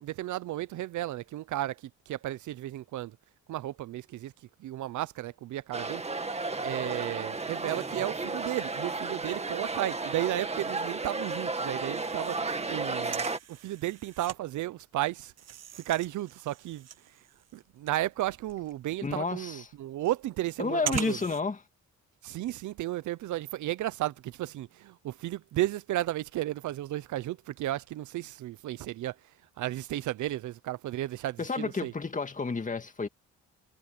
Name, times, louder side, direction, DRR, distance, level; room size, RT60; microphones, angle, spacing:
voice 1, 0.0-3.2 3.5-4.3 4.6-6.0 6.6-15.3 15.7-17.2 17.5-21.2 22.2-31.9, right 15 dB, 75° right, 0.8 m, -34 dB
sound 1, 5.7-13.4, right 3 dB, 20° right, 2.2 m, -33 dB
sound 2, 10.9-11.5 11.8-11.9 12.1-14.4 14.8-21.4, right 10 dB, 60° right, 1.4 m, -41 dB
voice 2, 19.0-19.6 20.6-21.6 31.4-33.1, left 4 dB, 25° left, 2.2 m, -31 dB
cardioid pair, 90°, 30 cm